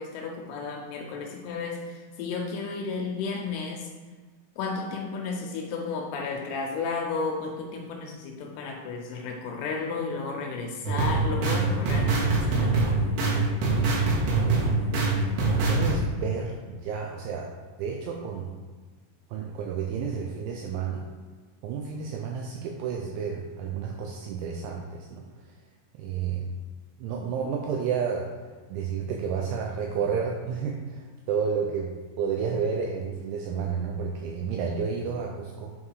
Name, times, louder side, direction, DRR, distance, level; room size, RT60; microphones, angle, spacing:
voice 1, 0.0-3.9 4.6-12.9, left 4 dB, 80° left, 1 dB, 3.0 m, -33 dB
sound 1, 10.8-15.9, right 3 dB, 70° right, 3.4 m, -24 dB
voice 2, 15.7-17.5 17.8-18.5 19.3-21.1 21.6-25.2 25.9-26.5 27.0-28.3 28.7-31.9 32.2-35.8, right 6 dB, 85° right, 0 dB, 2.7 m, -31 dB
8.5 x 3.8 x 4.7 m, 1.4 s
omnidirectional pair, 6.0 m